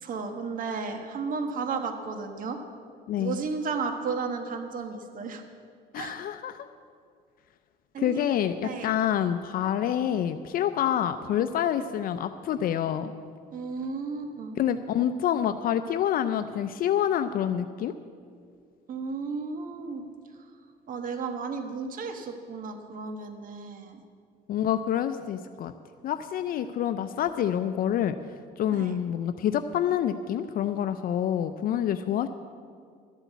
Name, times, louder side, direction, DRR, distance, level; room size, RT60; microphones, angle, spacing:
voice 1, 0.0-2.6 3.2-5.4 6.0-6.2 7.9-8.2 8.6-8.9 13.5-14.6 18.9-20.1 20.9-24.0 28.7-28.9, right 4 dB, 55° right, 6 dB, 1.3 m, -33 dB
voice 2, 3.1-3.4 5.9-6.6 8.0-13.1 14.6-17.9 24.5-25.7 26.0-28.1 28.6-32.3, left 10 dB, 60° left, 10 dB, 0.5 m, -27 dB
12.5 x 8.2 x 8.2 m, 2.1 s
cardioid pair, 110°, 17 cm